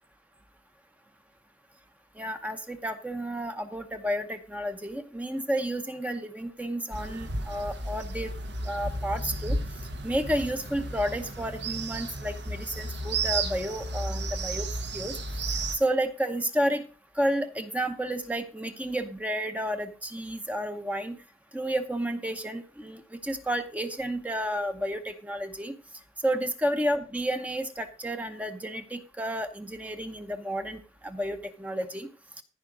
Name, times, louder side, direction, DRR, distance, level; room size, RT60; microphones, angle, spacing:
voice 1, 2.2-8.3 8.6-9.6 10.0-15.2 15.7-16.9 17.1-21.2 21.5-25.7 26.2-32.1, equal, 10° right, 8 dB, 0.8 m, -31 dB
sound 1, 6.9-15.8, right 2 dB, 65° right, 1.5 m, -33 dB
14.5 x 5.1 x 5.0 m, 0.34 s
head